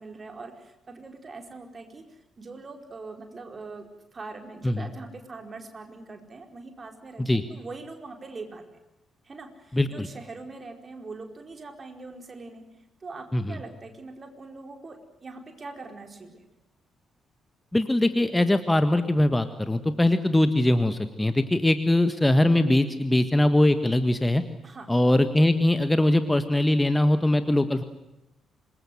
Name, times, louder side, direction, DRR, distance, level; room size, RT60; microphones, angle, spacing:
voice 1, 0.0-8.6 9.2-12.7 13.0-16.4 24.6-24.9, right 3 dB, 35° right, 5 dB, 4.8 m, -42 dB
voice 2, 9.7-10.1 13.3-13.6 17.7-24.4 24.9-27.8, left 1 dB, 10° left, 11 dB, 1.6 m, -22 dB
27.0 x 21.5 x 7.9 m, 0.93 s
figure-of-eight pair, 40°, 0 cm